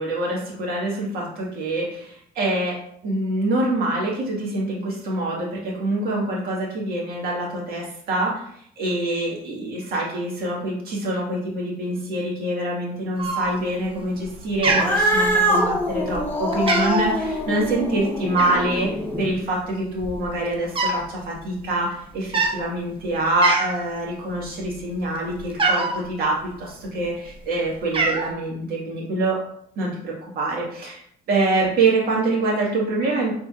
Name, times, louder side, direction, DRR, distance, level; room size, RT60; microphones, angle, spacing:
voice 1, 0.0-2.8 3.0-8.4 8.8-18.9 19.2-29.4 29.8-31.0 31.3-33.3, right 2 dB, 65° right, -3 dB, 1.8 m, -25 dB
Cat, 13.2-13.8 14.2-14.4 14.6-15.7 16.1-16.3 16.5-17.2 18.4-18.8 19.6-19.7 19.9-21.1 21.4-21.6 22.2-22.6 23.0-23.1 23.4-23.9 24.3-26.0 26.8-27.4 27.7-28.3, right 3 dB, 30° right, 0.8 m, -24 dB
Cat 2, 14.6-19.3, equal, 10° left, 0.9 m, -24 dB
5.3 x 3.8 x 2.4 m, 0.67 s
cardioid pair, 110°, 17 cm